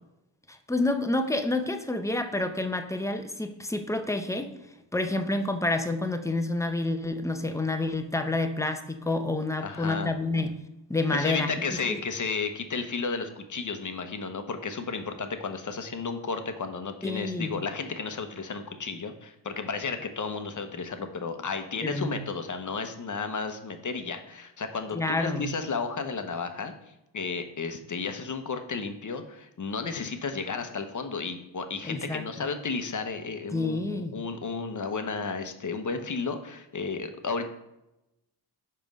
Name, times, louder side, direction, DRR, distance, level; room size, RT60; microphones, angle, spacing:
voice 1, 0.5-4.5 4.9-10.6 10.9-11.5 11.9-12.0 17.0-17.5 21.8-22.2 24.9-25.5 31.8-32.5 33.5-34.2, left 2 dB, 5° left, 7 dB, 0.6 m, -28 dB
voice 2, 9.6-10.1 11.1-26.7 27.1-37.5, left 4 dB, 40° left, 7 dB, 0.9 m, -33 dB
5.3 x 4.5 x 5.2 m, 0.90 s
cardioid pair, 60°, 48 cm